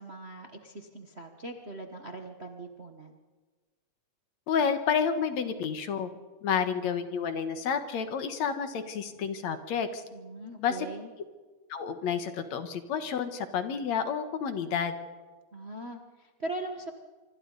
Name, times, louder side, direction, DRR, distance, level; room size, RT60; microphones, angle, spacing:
voice 1, 0.0-3.2 10.1-11.1 15.5-16.9, right 2 dB, 50° right, 3 dB, 0.7 m, -40 dB
voice 2, 4.5-6.1 6.4-10.0 10.6-10.9 11.7-15.0, left 7 dB, 65° left, 8 dB, 2.5 m, -30 dB
26.0 x 25.0 x 4.0 m, 1.4 s
omnidirectional pair, 3.5 m